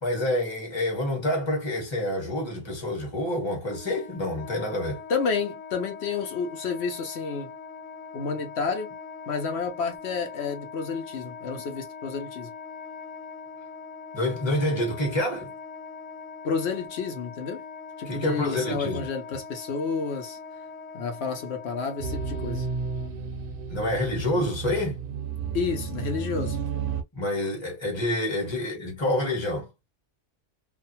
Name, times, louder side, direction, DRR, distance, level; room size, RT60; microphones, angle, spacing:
voice 1, 0.0-5.0 14.1-15.5 18.1-19.1 23.7-25.0 27.1-29.7, left 1 dB, 25° left, 1.2 m, -27 dB
Wind instrument woodwind instrument, 3.6-23.1, left 5 dB, 90° left, 0.9 m, -42 dB
voice 2, 5.1-7.5 8.1-8.9 9.3-12.5 16.4-17.6 18.0-20.4 20.9-22.7 25.5-26.6, left 5 dB, 65° left, 1.0 m, -30 dB
sound 1, 22.0-27.0, right 5 dB, 60° right, 0.6 m, -32 dB
2.6 x 2.3 x 2.7 m
omnidirectional pair, 1.2 m